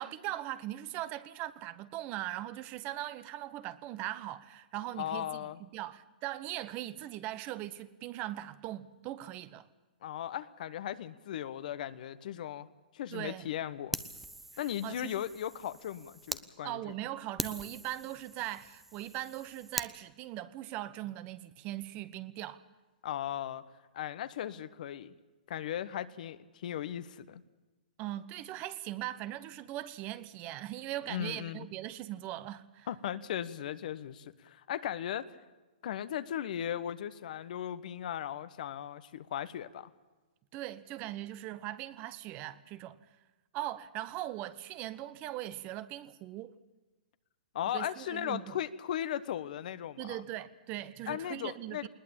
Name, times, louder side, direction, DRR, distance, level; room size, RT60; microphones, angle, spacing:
voice 1, 0.0-9.7 13.1-13.5 14.8-15.1 16.6-22.6 28.0-32.9 40.5-43.0 43.5-46.6 47.7-48.6 50.0-51.9, right 14 dB, 30° right, 1.1 m, -40 dB
voice 2, 5.0-5.6 10.0-12.7 12.9-14.0 14.6-16.9 23.0-23.6 23.9-25.1 25.5-27.4 31.1-31.7 32.9-35.3 35.8-39.9 47.5-50.2 51.1-51.9, left 10 dB, 60° left, 1.2 m, -37 dB
Fire, 13.9-16.4 16.9-17.0 17.4-19.9, right 2 dB, 5° right, 0.8 m, -42 dB
20.5 x 19.5 x 8.7 m
hypercardioid pair, 135°, 5 cm